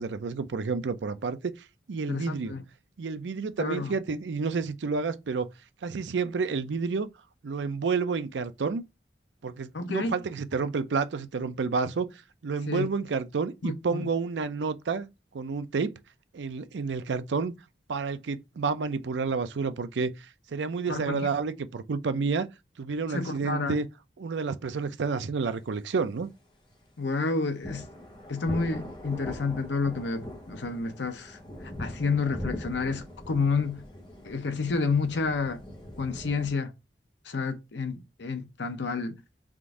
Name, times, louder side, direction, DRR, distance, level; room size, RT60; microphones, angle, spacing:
voice 1, 0.0-1.5 1.9-2.6 3.0-5.5 5.8-7.1 7.4-8.8 9.4-12.1 12.4-15.1 15.3-15.9 16.3-17.5 17.9-22.5 22.8-23.9 24.2-26.3, right 4 dB, 90° right, 0.5 m, -30 dB
voice 2, 2.1-2.6 3.6-3.9 9.7-10.1 12.7-12.9 13.6-14.1 20.9-21.2 23.1-23.8 27.0-27.9 28.3-31.4 31.8-33.8 34.2-35.6 36.0-36.7 37.3-39.2, left 4 dB, 85° left, 0.7 m, -29 dB
sound 1, 27.6-36.5, left 1 dB, 25° left, 0.8 m, -41 dB
3.7 x 2.6 x 4.6 m
head